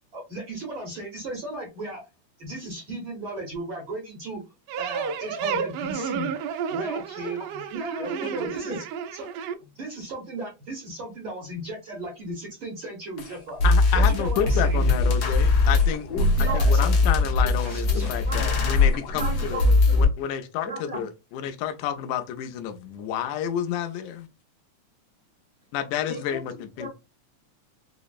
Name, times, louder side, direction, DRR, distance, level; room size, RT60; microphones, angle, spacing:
voice 1, 0.1-2.0 2.4-4.4 4.8-6.3 6.7-8.8 9.1-9.3 9.6-13.6 13.9-14.8 16.4-16.9 17.7-18.2, right 1 dB, 70° right, 1.1 m, -36 dB
sound 1, 4.7-9.5, right 7 dB, 90° right, 1.5 m, -31 dB
voice 2, 8.0-8.8 16.1-16.9 17.2-17.3 17.6-18.5 19.1-20.0 20.6-21.0 26.1-26.9, equal, 40° left, 0.5 m, -36 dB
sound 2, 13.2-13.3 13.6-20.0, left 3 dB, 65° left, 1.5 m, -21 dB
voice 3, 13.6-16.3 16.5-19.6 20.0-24.3 25.7-26.9, left 9 dB, 80° left, 1.9 m, -30 dB
4.9 x 2.0 x 2.3 m
omnidirectional pair, 3.5 m